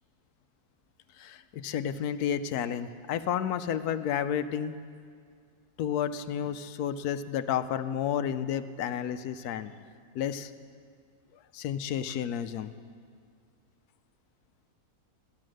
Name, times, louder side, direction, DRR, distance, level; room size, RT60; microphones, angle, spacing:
voice 1, 1.2-4.7 5.8-9.7 10.1-10.5 11.5-12.7, left 9 dB, 80° left, 11 dB, 1.1 m, -31 dB
14.0 x 11.0 x 6.3 m, 2.1 s
omnidirectional pair, 1.6 m